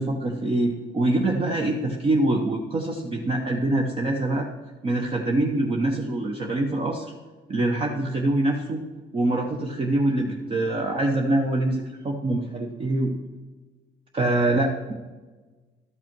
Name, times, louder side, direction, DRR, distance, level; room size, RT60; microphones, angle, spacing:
voice 1, 0.0-4.5 4.8-7.1 7.5-8.8 9.1-13.1 14.1-14.9, right 2 dB, 30° right, 1 dB, 1.0 m, -24 dB
12.5 x 5.7 x 6.1 m, 1.3 s
cardioid pair, 110°, 17 cm